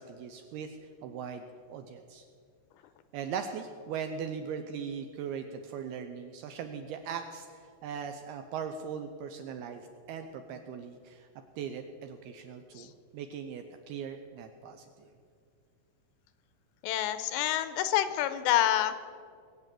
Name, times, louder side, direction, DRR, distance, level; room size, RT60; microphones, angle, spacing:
voice 1, 0.0-1.4 1.7-2.2 3.1-11.3 11.6-15.1, right 7 dB, 80° right, 6 dB, 2.3 m, -39 dB
voice 2, 16.8-19.0, left 12 dB, 85° left, 11 dB, 2.8 m, -28 dB
20.5 x 8.3 x 7.5 m, 2.2 s
omnidirectional pair, 5.2 m